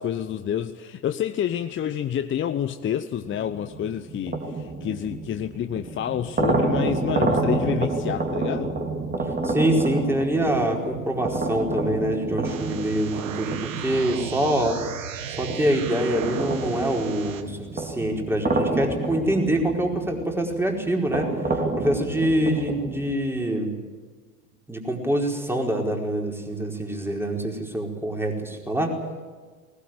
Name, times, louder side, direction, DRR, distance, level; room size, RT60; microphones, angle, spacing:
voice 1, 0.0-8.7, left 10 dB, 30° left, 0.9 m, -28 dB
sound 1, 3.3-15.0 15.5-23.2, right 3 dB, 20° right, 3.7 m, -29 dB
voice 2, 9.4-14.8 15.4-21.3 21.8-23.7 24.7-29.0, right 1 dB, 5° right, 4.6 m, -25 dB
sound 2, 12.4-17.4, right 9 dB, 70° right, 1.8 m, -35 dB
20.0 x 20.0 x 9.2 m
figure-of-eight pair, 70°, 42 cm